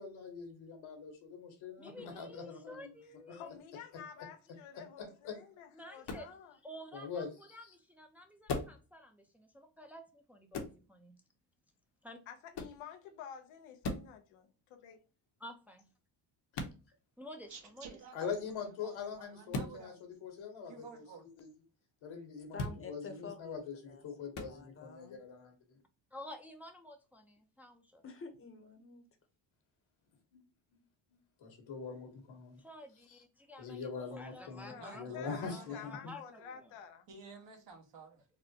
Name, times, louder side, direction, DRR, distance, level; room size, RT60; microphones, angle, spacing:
voice 1, 0.0-2.9 4.2-4.3 5.0-5.4 6.9-7.3 7.6-7.7 18.1-19.9 20.2-21.5 22.0-22.6 22.9-25.8 30.3-30.4 31.4-32.6 33.1-33.2 33.6-36.1, left 5 dB, 70° left, 1.4 m, -43 dB
voice 2, 1.8-3.5 5.7-6.3 6.6-11.2 12.0-12.2 15.4-15.8 16.9-18.0 18.3-18.4 26.1-28.0 32.6-36.7, left 1 dB, 5° right, 0.6 m, -51 dB
voice 3, 3.3-6.6 12.3-15.0 34.6-37.1, left 8 dB, 90° left, 0.8 m, -50 dB
sound 1, 6.0-6.3 8.5-8.8 10.5-10.8 12.5-12.8 13.8-14.1 16.5-16.8 19.5-19.8 22.5-22.8 24.3-24.5, left 3 dB, 55° left, 0.9 m, -38 dB
voice 4, 17.5-18.5 18.8-19.9 20.7-21.3 22.2-22.5 34.8-35.9 37.1-38.2, right 4 dB, 65° right, 1.4 m, -52 dB
voice 5, 22.5-25.2 28.0-29.0, left 4 dB, 25° left, 0.9 m, -50 dB
4.1 x 2.1 x 2.8 m
cardioid pair, 90°, 48 cm